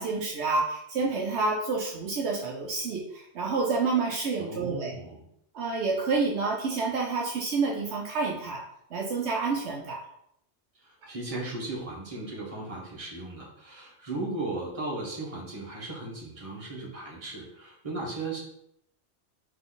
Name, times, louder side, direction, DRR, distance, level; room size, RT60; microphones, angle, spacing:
voice 1, 0.0-4.9 5.5-8.6 8.9-10.0, right 4 dB, 70° right, -1 dB, 1.0 m, -28 dB
voice 2, 4.4-5.3 10.7-18.4, right 2 dB, 30° right, -4 dB, 1.3 m, -36 dB
4.0 x 3.3 x 3.8 m, 0.75 s
omnidirectional pair, 1.2 m